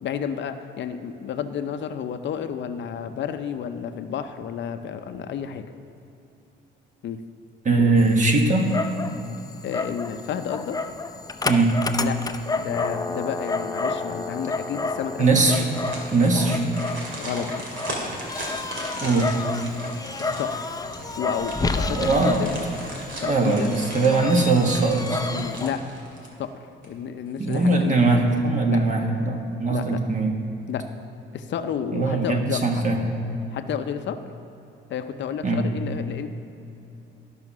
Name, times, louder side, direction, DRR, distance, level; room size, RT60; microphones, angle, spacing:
voice 1, 0.0-5.6 7.0-7.2 7.8-7.9 9.6-10.8 12.0-15.6 17.2-17.7 20.2-20.6 21.2-22.6 23.2-23.8 25.3-25.8 26.4-26.5 26.8-28.2 28.7-28.8 29.7-30.0 30.7-30.8 31.3-32.8 33.5-34.2 34.9-36.3, left 8 dB, 65° left, 8 dB, 0.6 m, -31 dB
voice 2, 7.6-8.7 11.4-11.8 15.2-15.6 16.1-16.6 19.0-19.3 21.9-22.4 23.3-25.3 27.4-30.3 31.9-33.0 35.4-35.6, right 3 dB, 40° right, 2 dB, 1.4 m, -21 dB
Dog, 8.0-25.7, left 3 dB, 20° left, 0.5 m, -31 dB
sound 1, 15.6-26.5 26.8-26.9 27.4-28.0 28.4-28.5, right 1 dB, 70° right, 2.3 m, -38 dB
12.5 x 5.7 x 6.1 m, 2.8 s
cardioid pair, 90°, 20 cm